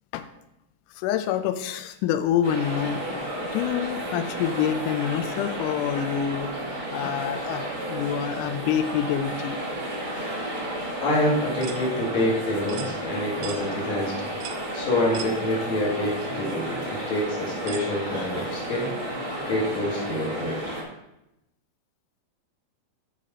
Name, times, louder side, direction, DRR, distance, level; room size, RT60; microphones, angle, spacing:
voice 1, 0.9-6.5 6.9-9.6, left 9 dB, 85° left, 9 dB, 1.8 m, -27 dB
sound 1, 2.4-20.8, right 1 dB, 60° right, 0.5 m, -32 dB
voice 2, 11.0-14.3 14.7-18.9 19.3-20.6, left 1 dB, 50° left, -4 dB, 3.3 m, -27 dB
sound 2, 11.6-11.8 12.7-12.9 13.4-13.6 14.4-14.6 15.1-15.3 16.2-16.3 17.7-17.9, right 9 dB, 85° right, 2.3 m, -38 dB
10.5 x 4.1 x 5.3 m, 0.88 s
omnidirectional pair, 4.2 m